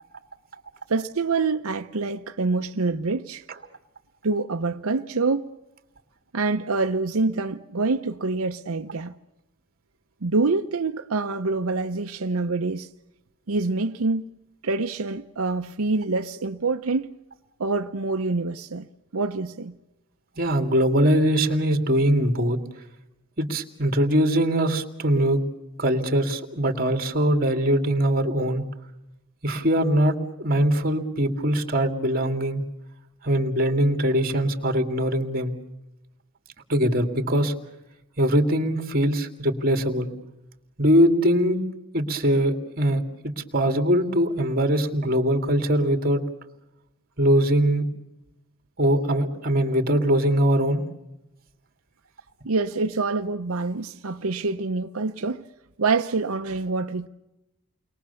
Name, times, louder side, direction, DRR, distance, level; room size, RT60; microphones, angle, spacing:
voice 1, 0.9-3.4 4.2-5.5 6.3-9.2 10.2-12.9 13.5-14.2 14.6-17.1 17.6-18.9 19.1-19.8 52.4-55.4 55.8-57.1, right 3 dB, 90° right, 0.8 m, -26 dB
voice 2, 20.4-22.6 23.4-25.4 25.8-28.6 29.4-32.6 33.2-35.5 36.7-37.5 38.2-40.1 40.8-41.6 41.9-46.2 47.2-47.9 48.8-50.8, equal, 45° right, 2.6 m, -22 dB
30.0 x 22.5 x 7.0 m
head